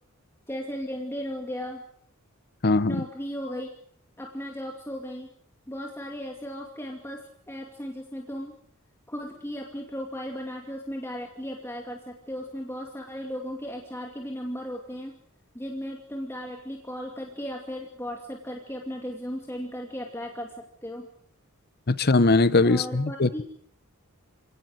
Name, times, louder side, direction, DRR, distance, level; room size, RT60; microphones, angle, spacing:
voice 1, 0.5-1.8 2.8-3.7 4.2-5.3 5.7-8.6 9.1-15.1 15.5-20.5 20.8-21.1 22.6-23.4, equal, 10° left, 2.5 m, -36 dB
voice 2, 2.6-3.0 21.9-23.4, left 3 dB, 45° left, 0.9 m, -21 dB
27.5 x 18.0 x 7.8 m
head